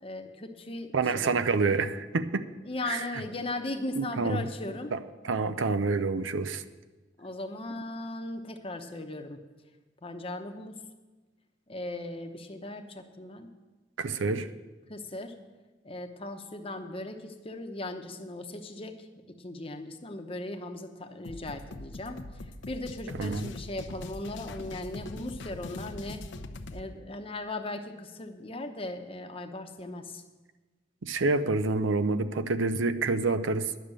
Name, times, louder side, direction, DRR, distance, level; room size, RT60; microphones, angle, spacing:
voice 1, 0.0-1.3 2.6-4.9 7.2-9.4 10.0-10.8 11.7-13.5 14.2-14.4 14.9-15.3 15.8-26.2 26.7-30.2, left 2 dB, 30° left, 6 dB, 0.9 m, -38 dB
voice 2, 0.9-2.5 2.9-3.0 4.0-4.4 4.9-5.0 5.2-6.6 14.0-14.5 23.2-23.5 31.0-33.7, right 3 dB, 85° right, 12 dB, 0.6 m, -27 dB
sound 1, 21.2-26.9, left 2 dB, 70° left, 0.7 m, -42 dB
11.0 x 6.7 x 8.8 m, 1.2 s
head